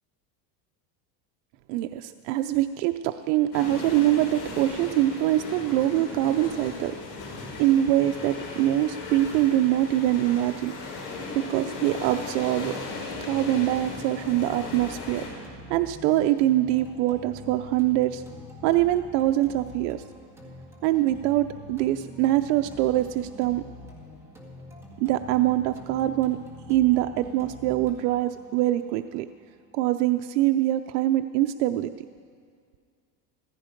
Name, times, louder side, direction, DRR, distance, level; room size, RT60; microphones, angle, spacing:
voice 1, 1.7-7.0 7.6-10.7 11.3-12.8 13.2-15.3 15.7-18.2 18.6-20.0 20.8-23.6 25.0-26.4 26.7-29.3 29.7-31.9, right 14 dB, 70° right, 8 dB, 0.6 m, -24 dB
sound 1, 3.5-15.3, left 3 dB, 45° left, 5.1 m, -37 dB
sound 2, 12.4-30.4, left 1 dB, 5° right, 1.9 m, -45 dB
15.5 x 14.5 x 5.2 m, 2.1 s
supercardioid pair, 145°, 49 cm